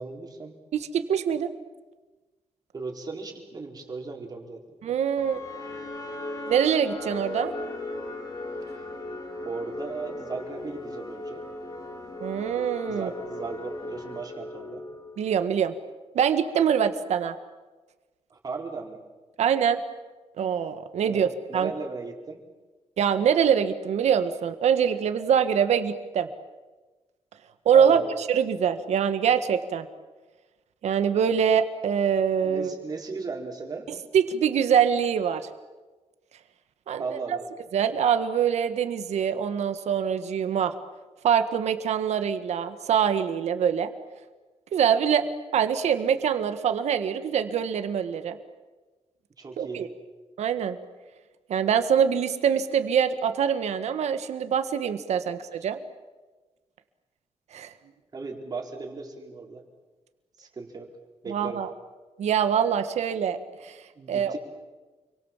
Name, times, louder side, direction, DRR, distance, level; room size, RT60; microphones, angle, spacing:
voice 1, 0.0-0.6 2.7-4.6 8.7-8.9 9.4-11.4 12.9-14.8 18.3-19.0 21.0-21.2 21.5-22.4 27.7-28.2 32.4-33.9 37.0-37.5 49.4-49.9 58.1-59.6 60.4-60.9 61.2-61.6 63.9-64.4, right 4 dB, 35° right, 1 dB, 4.5 m, -36 dB
voice 2, 0.7-1.5 4.8-5.4 6.5-7.5 12.2-13.1 15.2-15.7 16.1-17.3 19.4-19.8 20.4-21.3 21.5-21.7 23.0-26.3 27.6-28.0 28.3-29.9 30.8-32.7 34.1-35.5 36.9-37.0 37.7-40.7 41.2-43.9 44.7-45.3 45.5-48.4 49.6-49.9 50.4-50.8 51.5-55.8 57.5-57.7 61.3-61.7 62.2-63.4 63.6-63.7 64.1-64.4, right 8 dB, 80° right, 9 dB, 1.7 m, -24 dB
sound 1, 5.2-15.4, left 2 dB, 35° left, 3.7 m, -37 dB
29.5 x 23.5 x 7.5 m, 1.2 s
wide cardioid pair, 150°, 11 cm